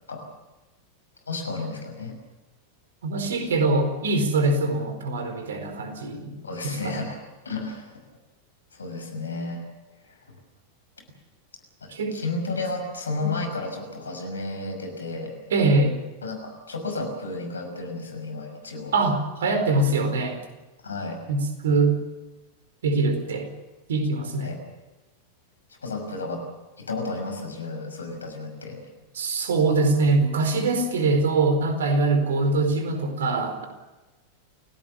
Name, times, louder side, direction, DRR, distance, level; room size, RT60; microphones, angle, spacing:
voice 1, 1.3-2.1 3.4-3.5 6.4-8.0 8.7-9.6 10.0-10.2 11.8-15.3 16.2-18.9 20.8-21.2 24.4-24.6 25.8-26.4 26.8-28.8, left 3 dB, 75° left, 5 dB, 6.0 m, -32 dB
voice 2, 3.0-6.3 6.6-6.9 11.9-12.2 13.2-13.3 15.5-16.0 18.9-20.4 21.3-21.9 22.8-23.5 23.9-24.5 29.2-33.7, right 3 dB, 65° right, 7 dB, 4.5 m, -23 dB
29.0 x 17.5 x 7.1 m, 1.1 s
figure-of-eight pair, 90°, 0 cm